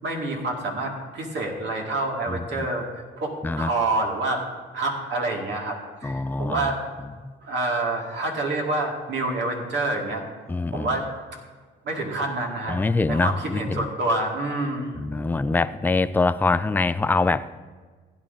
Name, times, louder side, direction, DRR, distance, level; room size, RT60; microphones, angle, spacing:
voice 1, 0.0-2.9 3.2-4.4 4.7-6.8 7.4-10.2 10.7-11.4 11.8-12.8 13.1-15.0, right 2 dB, 65° right, 0 dB, 2.1 m, -27 dB
voice 2, 2.3-2.7 3.4-3.7 6.0-6.7 7.2-7.3 10.5-11.0 12.7-13.9 14.9-17.6, left 3 dB, 10° left, 14 dB, 0.3 m, -24 dB
15.5 x 10.5 x 2.7 m, 1.4 s
cardioid pair, 90°, 20 cm